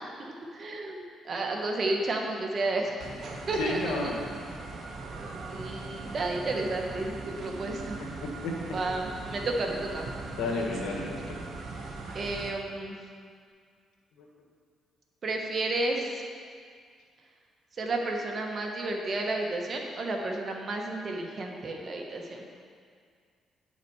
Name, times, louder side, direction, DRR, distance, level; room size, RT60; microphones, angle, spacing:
voice 1, 0.2-2.9 3.5-4.2 5.1-8.0 8.7-10.1 12.1-13.0 15.2-16.1 17.8-22.4, right 2 dB, 45° right, 1 dB, 1.3 m, -32 dB
sound 1, 3.0-12.5, right 3 dB, 60° right, 1.0 m, -40 dB
voice 2, 3.6-4.2 8.2-8.7 10.3-11.4, left 2 dB, 85° left, -2 dB, 1.5 m, -32 dB
10.0 x 5.9 x 4.7 m, 2.1 s
cardioid pair, 90°, 0 cm